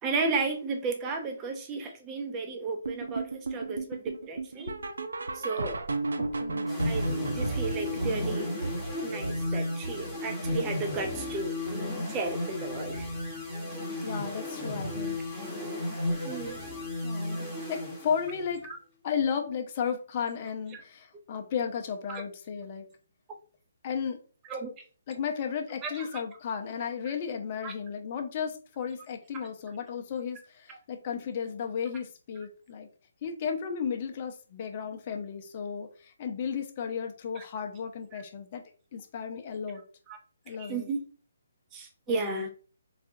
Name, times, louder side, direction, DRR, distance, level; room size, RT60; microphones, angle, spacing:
voice 1, 0.0-4.7 5.3-5.8 6.8-8.5 9.0-11.6 12.1-13.1 16.2-16.6 18.6-18.8 20.7-20.8 22.1-22.2 24.5-24.7 25.8-26.2 27.6-27.7 37.4-37.5 38.1-38.2 40.1-40.2 40.5-41.0 41.7-42.5, right 3 dB, 20° right, 3 dB, 0.7 m, -34 dB
sound 1, 2.8-12.0 12.3-12.6 12.9-13.0 13.5-13.6 14.1-14.2, right 2 dB, 80° right, 0.4 m, -35 dB
voice 2, 6.2-6.7 12.0-12.1 14.0-15.2 17.0-17.4 17.7-18.7 19.0-22.9 23.8-24.2 25.1-32.9 33.2-38.6 38.9-39.8 40.5-40.9 42.1-42.4, left 7 dB, 40° left, 4 dB, 0.6 m, -34 dB
sound 2, 6.7-18.5, left 1 dB, ahead, 1.2 m, -34 dB
4.1 x 2.4 x 2.6 m, 0.39 s
figure-of-eight pair, 145°, 0 cm